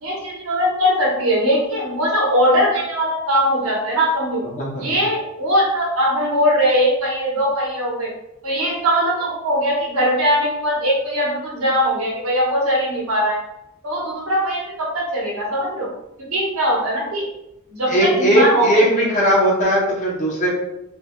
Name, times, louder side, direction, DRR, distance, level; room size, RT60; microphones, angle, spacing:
voice 1, 0.0-4.4 4.8-8.1 8.4-13.4 13.8-15.9 16.3-17.3 17.8-18.7 18.9-19.1, equal, 70° right, -3 dB, 1.0 m, -20 dB
voice 2, 17.9-20.5, equal, 35° left, -4 dB, 0.8 m, -18 dB
3.2 x 2.6 x 2.2 m, 0.88 s
head